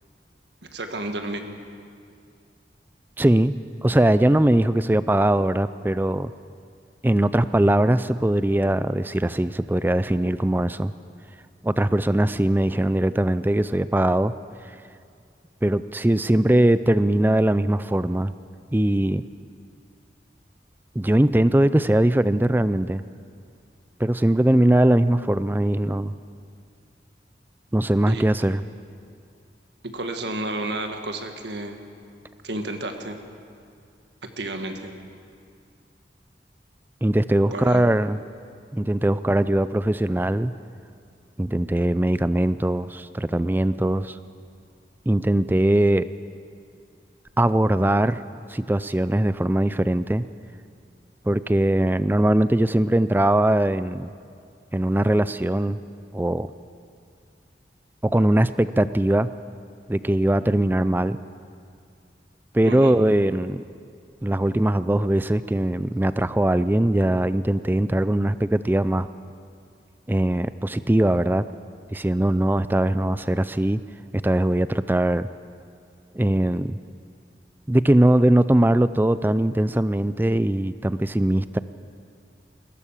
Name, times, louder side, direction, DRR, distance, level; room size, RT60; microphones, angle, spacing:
voice 1, 0.7-1.5 28.1-28.2 29.9-31.8 32.4-33.2 34.4-34.9 37.5-37.9 62.6-63.0, right 2 dB, 75° right, 5 dB, 1.7 m, -31 dB
voice 2, 3.2-3.5 3.8-6.3 7.0-10.9 11.6-14.3 15.6-18.3 18.7-19.2 21.0-23.0 24.0-26.1 27.7-28.6 37.0-38.2 38.7-40.5 41.4-44.2 45.1-46.1 47.4-48.2 48.5-50.2 51.3-54.1 54.7-55.8 56.1-56.5 58.0-59.3 59.9-61.2 62.5-63.6 64.2-69.1 70.1-71.4 71.9-73.8 74.2-75.3 76.1-76.8 77.7-81.6, right 1 dB, 10° right, 14 dB, 0.4 m, -21 dB
20.5 x 17.0 x 7.3 m, 2.3 s
head